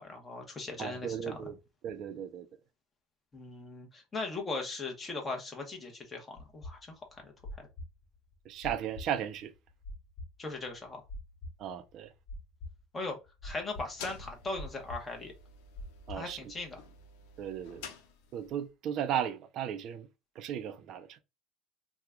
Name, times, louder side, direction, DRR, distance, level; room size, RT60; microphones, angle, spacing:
voice 1, 0.0-1.5 3.3-6.9 7.2-7.3 7.6-7.7 10.4-11.0 12.9-13.2 13.4-15.3 16.1-16.8, left 3 dB, 20° left, 1.0 m, -39 dB
voice 2, 0.8-1.6 1.8-2.5 8.5-9.5 11.6-12.1 16.1-16.4 17.4-17.8 18.3-20.1 20.4-21.2, right 9 dB, 50° right, 0.5 m, -35 dB
sound 1, 6.4-16.7, left 1 dB, 40° left, 0.8 m, -45 dB
sound 2, 13.6-18.7, left 5 dB, 85° left, 0.6 m, -50 dB
2.9 x 2.3 x 3.6 m
cardioid pair, 140°, 0 cm